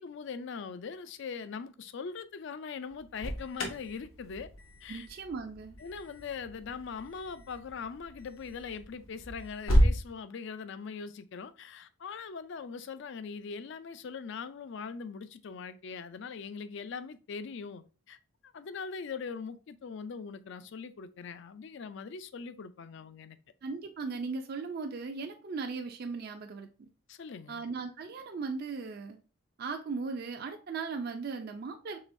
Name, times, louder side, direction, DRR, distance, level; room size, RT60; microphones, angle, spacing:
voice 1, 0.0-4.5 4.8-5.1 5.8-18.2 18.4-23.4 27.1-27.6, left 5 dB, 60° left, 0.4 m, -41 dB
Alarm, 2.9-10.0, equal, 80° left, 1.0 m, -32 dB
voice 2, 4.9-5.8 23.6-26.9 27.5-29.2 29.6-32.0, right 4 dB, 45° right, 0.4 m, -37 dB
4.8 x 3.3 x 2.6 m
head